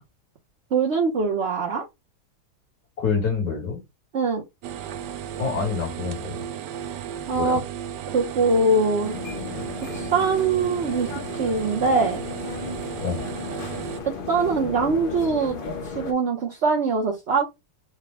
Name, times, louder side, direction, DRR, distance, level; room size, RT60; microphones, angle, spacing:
voice 1, 0.7-1.8 4.1-4.4 7.3-7.6 8.1-9.1 9.9-12.2 14.0-15.6 15.8-17.5, right 3 dB, 50° right, 1.0 m, -23 dB
voice 2, 3.0-3.8 5.4-6.5 7.3-7.6 13.0-13.3, left 5 dB, 70° left, 2.3 m, -27 dB
sound 1, 4.6-14.0, right 9 dB, 90° right, 1.2 m, -34 dB
sound 2, 9.0-16.1, left 4 dB, 50° left, 0.7 m, -35 dB
4.9 x 2.2 x 3.3 m
omnidirectional pair, 1.8 m